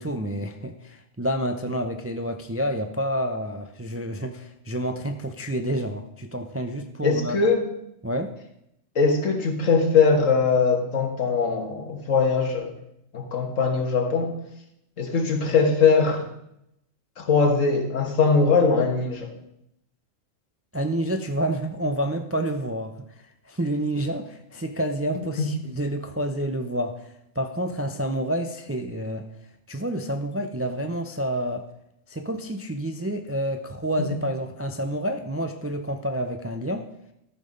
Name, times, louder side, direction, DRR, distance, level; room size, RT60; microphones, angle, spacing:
voice 1, 0.0-7.4 8.0-8.3 20.7-23.0 23.5-29.3 29.7-31.7 32.1-36.9, right 1 dB, 20° right, 6 dB, 0.4 m, -29 dB
voice 2, 7.0-7.7 8.9-12.7 13.1-14.3 15.0-16.3 17.2-19.3 25.4-25.5, left 4 dB, 80° left, 4 dB, 1.8 m, -21 dB
13.5 x 5.8 x 5.3 m, 0.79 s
omnidirectional pair, 1.3 m